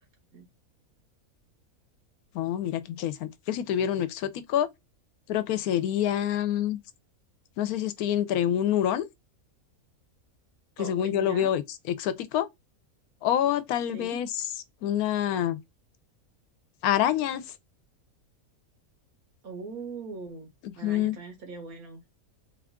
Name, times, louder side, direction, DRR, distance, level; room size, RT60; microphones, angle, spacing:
voice 1, 2.3-4.7 5.3-6.8 7.6-9.1 10.8-11.6 11.9-12.5 13.2-14.4 14.8-15.6 16.8-17.4 20.6-21.2, left 10 dB, 85° left, 1.1 m, -27 dB
voice 2, 10.8-11.5 13.9-14.2 19.4-22.0, right 4 dB, 80° right, 1.8 m, -41 dB
3.8 x 2.3 x 3.5 m
omnidirectional pair, 1.5 m